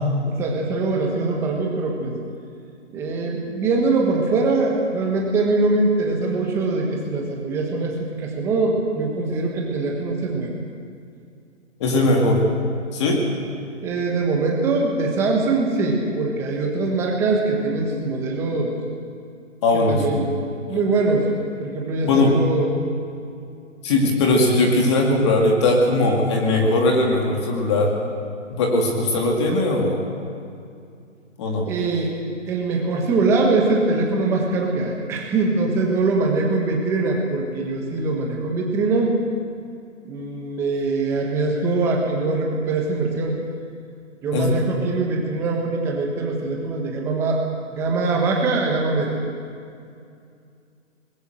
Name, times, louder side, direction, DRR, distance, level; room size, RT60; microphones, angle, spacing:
voice 1, 0.3-2.1 2.9-10.5 13.8-18.7 19.7-20.3 20.7-21.3 21.6-22.7 31.7-32.1 32.5-39.2 40.0-43.4 44.2-47.4 47.7-49.2, right 3 dB, 5° right, 0 dB, 1.3 m, -22 dB
voice 2, 11.8-12.4 12.9-13.2 19.6-20.2 22.0-22.4 23.8-27.9 28.6-30.0 31.4-31.7 44.3-44.5, left 2 dB, 20° left, 0 dB, 2.2 m, -19 dB
20.5 x 18.5 x 7.7 m, 2.4 s
hypercardioid pair, 160°, 38 cm